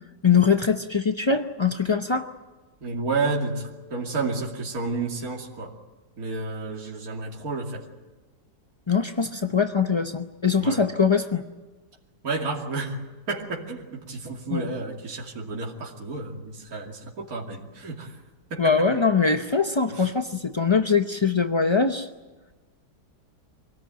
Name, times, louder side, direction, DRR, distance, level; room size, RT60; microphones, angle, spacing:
voice 1, 0.2-2.3 8.9-11.4 14.5-14.7 18.6-22.1, left 5 dB, 40° left, 7 dB, 0.3 m, -22 dB
voice 2, 2.8-5.7 6.2-7.8 10.6-10.8 12.2-18.2 18.5-18.7 20.0-20.1, right 3 dB, 60° right, -2 dB, 3.1 m, -31 dB
25.5 x 18.0 x 9.0 m, 1.3 s
omnidirectional pair, 1.8 m